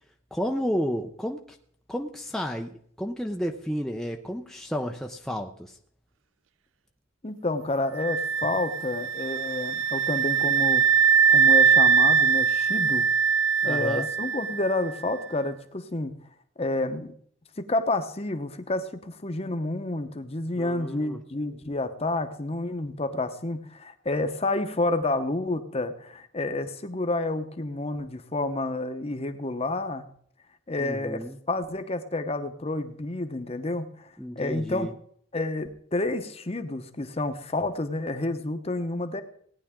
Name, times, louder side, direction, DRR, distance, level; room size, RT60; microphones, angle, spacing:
voice 1, 0.3-1.6 1.9-5.8 13.6-14.1 20.6-21.2 30.8-31.4 34.2-34.9, equal, ahead, 2 dB, 0.6 m, -32 dB
voice 2, 7.2-10.9 11.3-13.1 13.6-16.2 16.6-17.1 17.6-30.1 30.7-34.1 34.4-34.9 35.3-39.2, left 2 dB, 30° left, 9 dB, 0.9 m, -29 dB
sound 1, 8.0-14.8, right 6 dB, 85° right, 0.4 m, -22 dB
17.5 x 9.9 x 3.7 m, 0.62 s
head